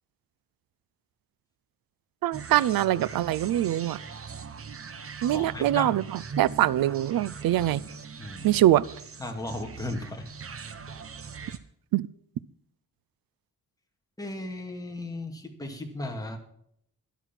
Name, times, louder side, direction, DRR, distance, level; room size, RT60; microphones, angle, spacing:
voice 1, 2.2-4.0 5.2-7.8 8.4-8.8 11.9-12.1, right 13 dB, 90° right, 0.6 m, -23 dB
sound 1, 2.3-11.6, right 6 dB, 40° right, 1.1 m, -41 dB
voice 2, 5.3-6.0 8.2-8.6 9.2-10.3 14.2-16.4, left 2 dB, 10° left, 2.1 m, -36 dB
12.5 x 11.0 x 5.9 m
wide cardioid pair, 155°, 34 cm